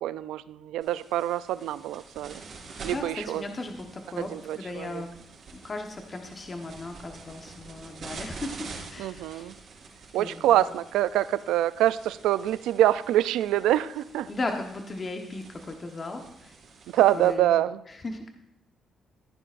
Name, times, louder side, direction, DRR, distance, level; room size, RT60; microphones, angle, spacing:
voice 1, 0.0-2.4 2.8-3.4 4.2-4.9 9.0-9.5 10.1-14.3 16.9-17.8, right 13 dB, 90° right, 16 dB, 0.4 m, -25 dB
sound 1, 0.8-17.3, right 4 dB, 60° right, 4.4 m, -47 dB
voice 2, 2.7-5.1 5.5-9.5 10.2-10.6 14.3-16.6 17.1-17.5 17.9-18.3, left 2 dB, 35° left, 4 dB, 1.1 m, -37 dB
15.0 x 10.0 x 2.5 m, 0.82 s
cardioid pair, 90°, 0 cm